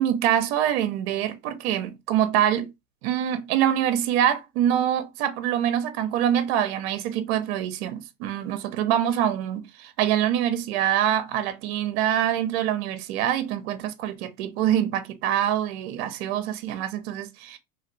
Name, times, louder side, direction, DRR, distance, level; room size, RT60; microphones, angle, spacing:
voice 1, 0.0-2.7 3.0-17.6, right 10 dB, 50° right, 0.7 m, -25 dB
2.8 x 2.4 x 3.0 m
hypercardioid pair, 130°, 42 cm